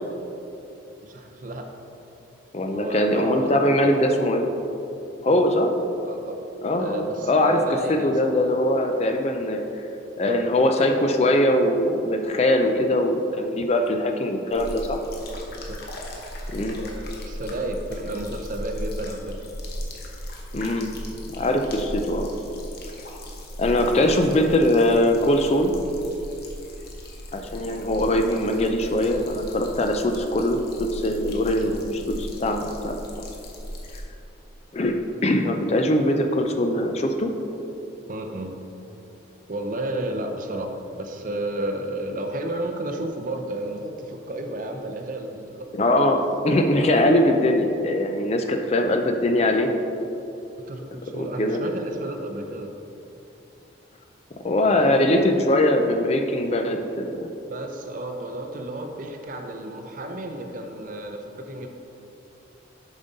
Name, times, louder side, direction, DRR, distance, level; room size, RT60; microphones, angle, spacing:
voice 1, 1.0-1.7 2.6-4.1 5.2-5.7 6.0-6.4 6.8-8.1 10.3-10.4 15.1-15.8 17.2-19.5 23.9-24.1 31.6-31.8 38.1-38.6 39.5-45.7 50.7-52.7 54.6-55.0 57.5-61.7, right 1 dB, 40° right, 4 dB, 0.5 m, -32 dB
voice 2, 2.5-4.4 5.2-5.7 6.6-7.6 7.9-9.8 10.2-15.0 16.5-16.8 20.5-20.9 21.3-22.3 23.6-25.7 27.3-30.6 30.9-33.0 34.7-34.9 35.2-37.3 45.7-49.7 51.1-51.6 54.4-57.3, left 1 dB, 30° left, 4 dB, 0.4 m, -22 dB
sound 1, 14.5-34.0, equal, 50° left, 1.0 m, -37 dB
7.1 x 5.3 x 4.0 m, 2.8 s
head